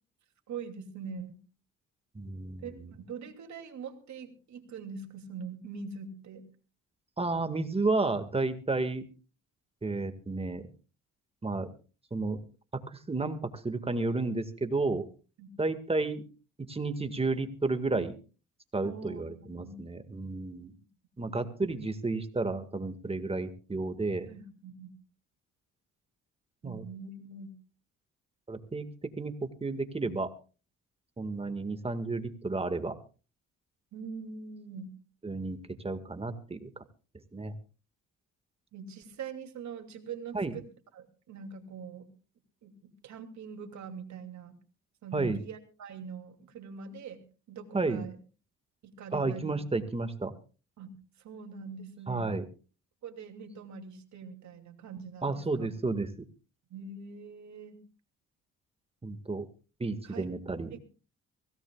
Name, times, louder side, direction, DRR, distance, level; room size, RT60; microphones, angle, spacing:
voice 1, 0.5-1.4 2.6-6.5 15.4-15.5 18.8-19.8 21.2-21.4 24.3-24.9 26.6-27.6 33.9-34.9 38.7-40.7 40.9-42.1 42.6-44.6 45.0-48.2 48.8-49.6 50.8-52.4 53.0-55.7 56.7-57.8 60.0-60.3 60.7-60.8, right 5 dB, 70° right, 5 dB, 2.8 m, -43 dB
voice 2, 2.2-2.9 7.2-9.0 9.8-10.6 11.4-11.7 12.1-12.4 12.9-15.1 15.6-16.2 16.6-18.2 18.7-20.7 21.2-24.3 26.6-26.8 28.5-30.3 31.2-33.0 35.2-36.7 37.3-37.5 40.3-40.5 45.1-45.4 47.7-48.1 49.1-50.3 52.1-52.5 55.2-56.3 59.0-59.5 59.8-60.7, right 3 dB, 20° right, 8 dB, 1.8 m, -32 dB
24.0 x 17.0 x 2.4 m, 0.35 s
cardioid pair, 90°, 30 cm